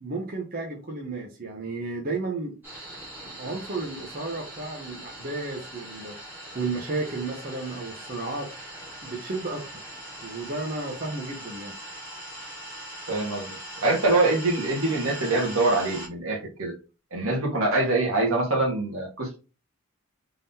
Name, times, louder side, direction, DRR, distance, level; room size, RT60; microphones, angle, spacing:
voice 1, 0.0-2.6 3.2-6.2 6.5-8.7 9.0-9.9 10.2-11.7, right 3 dB, 40° right, 0 dB, 0.8 m, -33 dB
sound 1, 2.6-16.1, right 1 dB, 10° right, 1.7 m, -41 dB
voice 2, 13.1-16.7 17.1-19.4, right 2 dB, 70° right, 1 dB, 1.5 m, -24 dB
3.7 x 3.6 x 2.7 m, 0.31 s
head